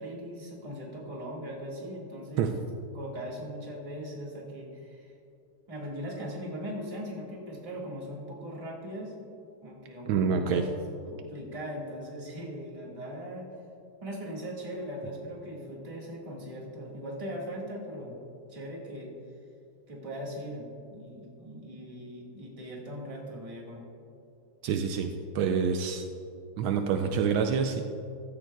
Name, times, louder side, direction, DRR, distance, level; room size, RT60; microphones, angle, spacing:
voice 1, 0.0-2.5 2.9-5.1 5.7-9.1 9.6-10.8 11.1-13.5 14.0-18.2 18.5-19.1 19.9-23.8, equal, 20° right, -3 dB, 1.6 m, -39 dB
voice 2, 10.1-10.7 24.6-25.1 25.3-26.0 26.6-27.8, right 6 dB, 80° right, 5 dB, 1.4 m, -26 dB
15.0 x 13.5 x 2.3 m, 2.6 s
omnidirectional pair, 2.2 m